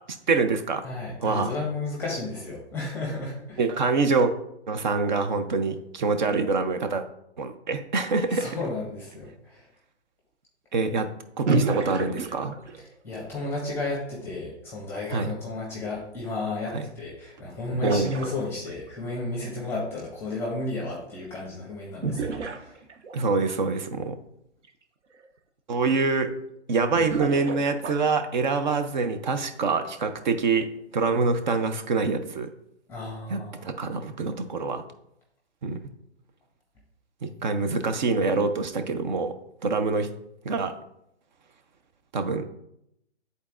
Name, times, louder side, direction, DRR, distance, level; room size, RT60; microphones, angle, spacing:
voice 1, 0.3-0.8 1.2-1.5 3.6-4.3 4.7-7.1 7.4-8.6 10.7-11.1 11.4-12.5 15.1-15.3 16.7-16.9 17.8-18.1 23.1-24.2 25.7-26.3 26.7-30.7 30.9-32.5 33.3-34.8 35.6-35.8 37.2-39.3 39.6-40.1 40.4-40.8 42.1-42.5, right 4 dB, 40° right, 8 dB, 0.6 m, -25 dB
voice 2, 0.8-3.7 8.3-9.7 13.0-22.8 32.9-33.7, left 2 dB, 5° left, -4 dB, 1.3 m, -33 dB
sound 1, 11.5-12.9 16.9-17.0 17.7-18.9 22.0-23.3 24.6-24.7 25.2-25.3 26.9-28.2, right 3 dB, 80° right, 0.7 m, -30 dB
9.9 x 4.0 x 2.4 m, 0.79 s
hypercardioid pair, 140°, 35 cm